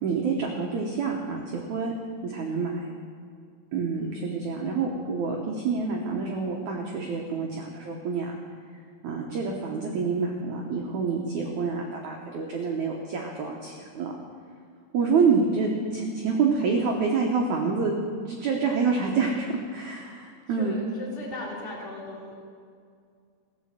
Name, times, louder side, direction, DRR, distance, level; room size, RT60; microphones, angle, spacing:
voice 1, 0.0-1.9 2.2-2.9 3.7-8.4 9.0-14.1 14.9-17.9 18.3-20.7, right 5 dB, 80° right, 0 dB, 1.7 m, -27 dB
voice 2, 3.9-4.3 20.5-22.4, left 1 dB, 5° left, -5 dB, 1.9 m, -38 dB
16.5 x 7.5 x 7.5 m, 2.2 s
omnidirectional pair, 5.0 m